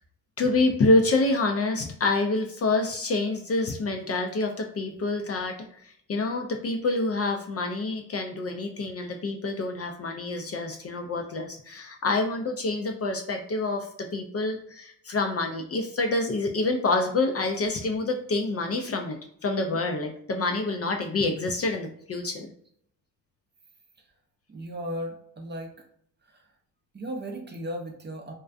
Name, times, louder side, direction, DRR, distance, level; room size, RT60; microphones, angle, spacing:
voice 1, 0.4-19.2 19.4-22.5, left 2 dB, 35° left, 3 dB, 0.4 m, -27 dB
voice 2, 24.5-25.7 26.3-26.5 26.9-28.3, equal, 25° right, 2 dB, 0.5 m, -36 dB
2.4 x 2.2 x 2.4 m, 0.67 s
supercardioid pair, 60°, 41 cm